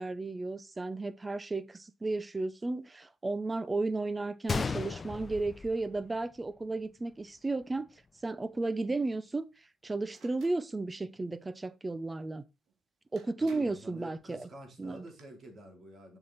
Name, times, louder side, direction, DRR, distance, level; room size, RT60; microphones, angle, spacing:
voice 1, 0.0-7.9 8.2-9.5 9.8-12.4 13.1-14.5 14.8-15.0, right 3 dB, 20° right, 0.7 m, -34 dB
Gunshot gunfire, 4.5-6.5 6.8-6.9 7.6-7.8, left 5 dB, 35° left, 0.7 m, -35 dB
sound 1, 10.1-10.6 12.7-12.8 13.2-13.9 14.8-15.2, right 5 dB, 80° right, 2.1 m, -58 dB
voice 2, 13.4-16.2, right 1 dB, 45° right, 3.8 m, -48 dB
7.4 x 6.1 x 4.2 m
cardioid pair, 90°, 0 cm